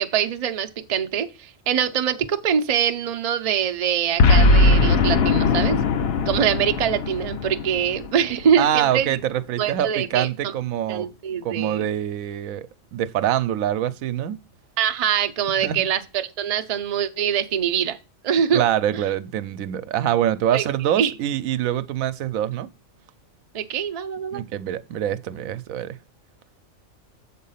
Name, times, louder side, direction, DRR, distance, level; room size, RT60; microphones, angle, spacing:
voice 1, 0.0-5.8 6.3-9.2 9.6-10.5 10.9-11.9 14.8-18.0 18.2-18.7 18.9-19.0 20.5-20.7 21.0-21.1 23.5-24.4, right 8 dB, 50° right, 0.4 m, -24 dB
Boom, 4.2-8.6, left 3 dB, 55° left, 0.9 m, -19 dB
voice 2, 8.6-11.1 11.4-14.4 15.6-15.8 18.5-22.7 24.3-26.0, right 11 dB, 85° right, 1.0 m, -25 dB
7.5 x 4.2 x 5.6 m
omnidirectional pair, 1.4 m